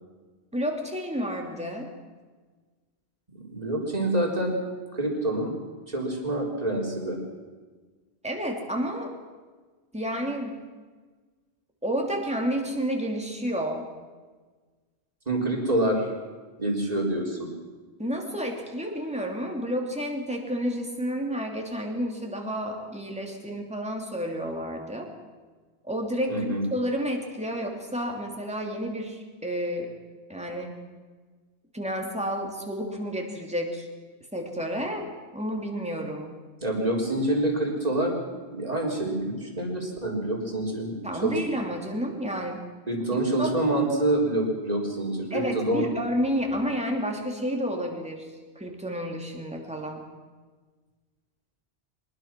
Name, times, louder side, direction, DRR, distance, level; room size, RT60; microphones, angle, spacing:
voice 1, 0.5-1.9 8.2-9.1 9.9-10.6 11.8-13.9 18.0-25.1 25.8-29.9 30.3-30.7 31.7-33.9 34.3-36.3 41.0-42.6 43.1-43.5 45.3-50.0, equal, 5° right, 1 dB, 2.9 m, -30 dB
voice 2, 3.3-4.6 4.9-5.5 5.9-7.2 15.3-16.1 16.6-17.5 26.3-26.6 36.6-38.2 38.5-41.0 41.2-41.4 42.9-45.9, right 1 dB, 35° right, -1 dB, 4.0 m, -26 dB
24.0 x 20.5 x 6.1 m, 1.4 s
omnidirectional pair, 1.1 m